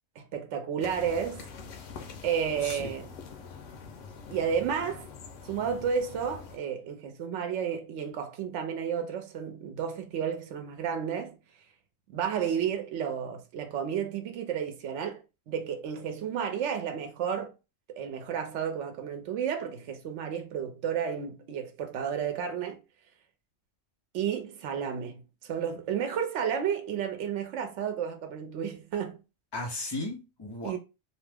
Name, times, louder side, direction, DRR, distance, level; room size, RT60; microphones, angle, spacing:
voice 1, 0.2-1.5 2.2-3.1 4.3-5.1 5.4-11.4 12.1-17.5 17.9-22.8 24.1-29.2 30.6-30.8, right 7 dB, 80° right, 0.9 m, -32 dB
sound 1, 0.8-6.6, left 5 dB, 90° left, 1.0 m, -45 dB
voice 2, 2.6-2.9 29.5-30.8, left 2 dB, 25° left, 0.7 m, -36 dB
2.8 x 2.0 x 3.3 m
omnidirectional pair, 1.2 m